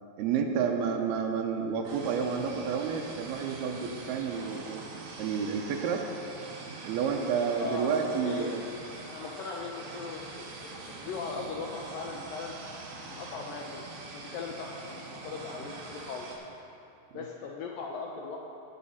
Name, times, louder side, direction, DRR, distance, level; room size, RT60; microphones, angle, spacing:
voice 1, 0.2-4.8 5.2-6.0 6.8-8.6 17.1-17.2, right 6 dB, 75° right, 3 dB, 2.5 m, -30 dB
sound 1, 1.8-16.3, right 3 dB, 55° right, 2.0 m, -44 dB
voice 2, 7.6-8.6 9.0-12.5 13.1-16.4 17.1-18.4, left 4 dB, 80° left, 0 dB, 2.0 m, -39 dB
17.0 x 7.5 x 5.6 m, 2.8 s
omnidirectional pair, 5.0 m